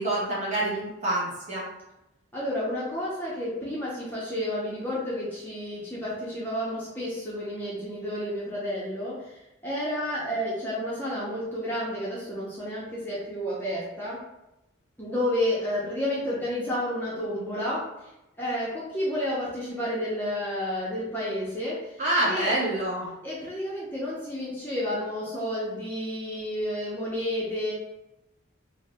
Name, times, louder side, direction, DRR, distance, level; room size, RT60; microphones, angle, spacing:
voice 1, 0.0-1.7 22.0-23.1, right 1 dB, 35° right, -6 dB, 1.0 m, -27 dB
voice 2, 2.3-14.2 15.0-17.9 18.4-22.5 23.2-27.7, left 1 dB, 10° left, -7 dB, 0.5 m, -31 dB
2.6 x 2.0 x 3.3 m, 0.93 s
head